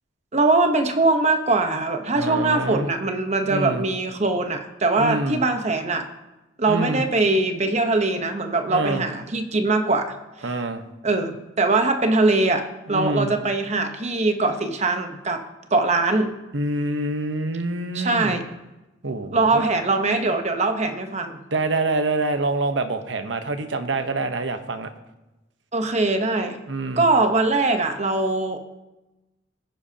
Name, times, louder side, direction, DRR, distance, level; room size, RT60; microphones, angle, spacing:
voice 1, 0.3-6.1 6.6-10.2 11.0-15.4 15.7-16.3 17.9-18.4 19.3-21.4 25.7-26.6 27.0-28.6, right 3 dB, 35° right, 6 dB, 1.0 m, -22 dB
voice 2, 2.1-2.9 3.5-3.8 5.0-5.4 6.7-7.0 8.7-9.0 10.4-10.8 12.9-13.3 16.5-18.4 19.0-19.6 21.5-24.9 26.7-27.1, right 2 dB, 75° right, 8 dB, 1.0 m, -26 dB
19.0 x 10.5 x 2.8 m, 1.0 s
head